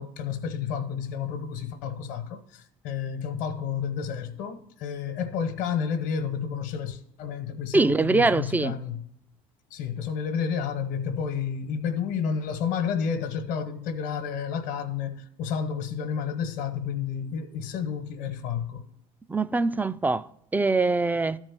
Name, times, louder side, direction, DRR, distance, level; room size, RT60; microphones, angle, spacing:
voice 1, 0.0-9.0 9.7-18.8, left 7 dB, 75° left, 1.2 m, -31 dB
voice 2, 7.7-8.7 19.3-20.2 20.5-21.4, right 3 dB, 10° right, 0.4 m, -23 dB
12.5 x 4.5 x 6.1 m
supercardioid pair, 85°, 17 cm